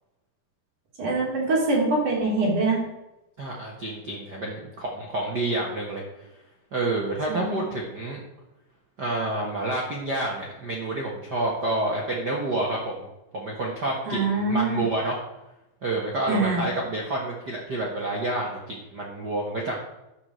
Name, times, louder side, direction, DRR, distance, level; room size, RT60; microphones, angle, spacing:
voice 1, 1.0-2.8 7.3-7.7 14.1-14.8 16.3-16.7, right 2 dB, 55° right, -3 dB, 4.2 m, -24 dB
voice 2, 3.4-6.3 6.7-8.2 9.0-13.1 13.3-15.2 15.8-19.8, right 2 dB, 70° right, -2 dB, 0.9 m, -29 dB
11.5 x 4.9 x 7.5 m, 0.95 s
omnidirectional pair, 4.3 m